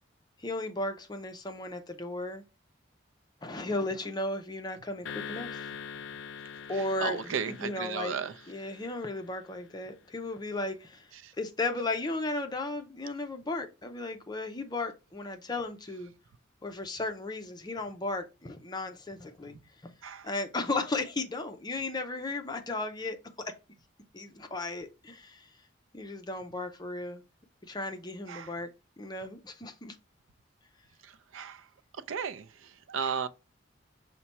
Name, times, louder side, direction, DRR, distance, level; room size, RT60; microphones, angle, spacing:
voice 1, 0.4-2.4 3.4-5.7 6.7-8.1 8.5-11.1 11.4-16.1 16.6-19.5 19.8-19.9 20.2-23.2 23.4-23.5 24.1-25.5 25.9-27.2 27.6-28.7 29.0-30.0, left 2 dB, 20° left, 0.6 m, -35 dB
sound 1, 5.0-9.5, left 7 dB, 70° left, 0.4 m, -43 dB
voice 2, 7.0-8.3 11.2-11.3 20.0-20.3 28.3-28.5 31.3-31.6 32.1-33.3, right 6 dB, 85° right, 0.4 m, -34 dB
5.7 x 2.2 x 4.0 m
head